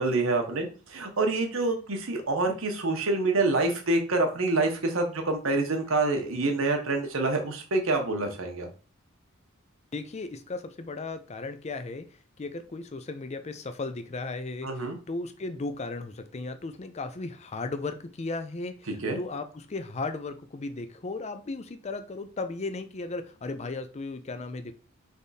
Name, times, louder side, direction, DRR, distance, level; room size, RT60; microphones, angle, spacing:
voice 1, 0.0-8.7 14.6-15.0 18.9-19.2, right 2 dB, 70° right, 4 dB, 1.0 m, -27 dB
voice 2, 9.9-24.7, left 3 dB, 30° left, 9 dB, 0.5 m, -36 dB
3.6 x 3.5 x 4.1 m, 0.37 s
head